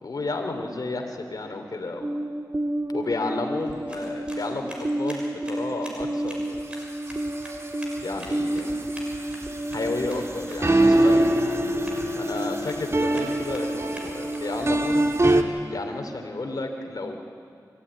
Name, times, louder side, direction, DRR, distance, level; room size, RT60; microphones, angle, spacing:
voice 1, 0.0-2.1 2.9-6.6 8.0-8.7 9.7-11.2 12.2-15.1 15.7-17.2, left 2 dB, 60° left, 4 dB, 2.8 m, -32 dB
sound 1, 2.0-15.4, right 1 dB, 40° right, 1.7 m, -26 dB
sound 2, 3.6-14.7, equal, 15° right, 6.1 m, -46 dB
Keyboard (musical), 10.9-13.7, left 5 dB, 55° right, 3.3 m, -33 dB
24.0 x 15.0 x 9.7 m, 2.2 s
cardioid pair, 45°, 7 cm